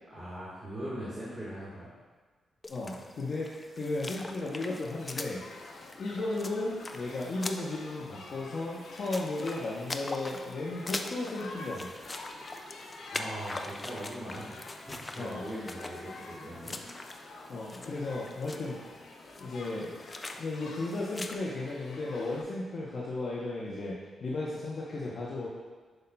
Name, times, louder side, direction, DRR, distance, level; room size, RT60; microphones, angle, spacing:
voice 1, 0.1-1.9 13.1-16.8, right 1 dB, 20° right, -10 dB, 1.4 m, -40 dB
sound 1, 2.6-21.4, left 2 dB, 20° left, 0.3 m, -43 dB
voice 2, 2.7-5.4 6.0-11.9 15.2-15.4 17.5-19.0 19.4-19.9 20.4-25.5, left 2 dB, 45° left, -5 dB, 0.7 m, -35 dB
Shout / Human group actions, 4.8-22.4, left 2 dB, 75° left, 0.8 m, -48 dB
7.8 x 5.6 x 2.2 m, 1.4 s
wide cardioid pair, 170°, 0 cm